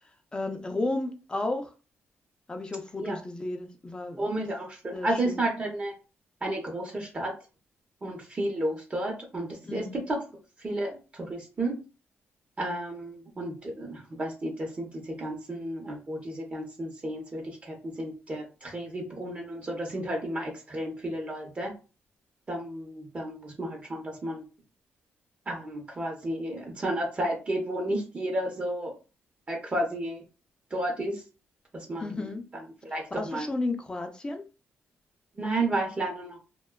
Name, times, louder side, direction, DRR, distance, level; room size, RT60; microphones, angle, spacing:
voice 1, 0.3-1.7 2.5-4.4 4.9-5.4 9.6-10.0 32.0-32.4 33.1-34.4, left 2 dB, 20° left, 0.5 m, -33 dB
voice 2, 4.2-5.9 6.4-7.3 8.0-10.2 10.6-11.8 12.6-21.7 22.5-24.4 25.5-28.9 29.5-30.2 30.7-31.2 31.7-33.5 35.3-36.4, right 1 dB, 30° right, 0.8 m, -32 dB
2.5 x 2.2 x 2.2 m
cardioid pair, 100°, 5 cm